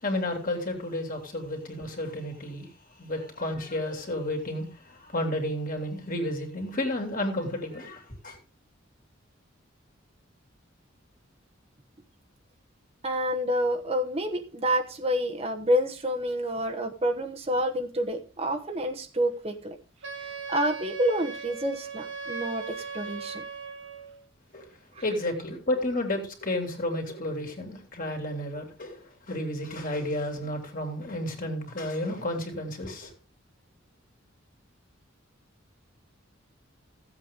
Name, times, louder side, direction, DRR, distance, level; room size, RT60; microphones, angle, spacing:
voice 1, 0.0-2.7 3.0-8.4 24.5-24.7 25.0-33.1, left 1 dB, 45° left, 2.7 m, -32 dB
voice 2, 13.0-19.8 20.5-23.4, equal, 30° right, 1.1 m, -28 dB
Wind instrument woodwind instrument, 20.0-24.2, right 5 dB, 70° right, 1.3 m, -38 dB
15.5 x 8.1 x 3.6 m
head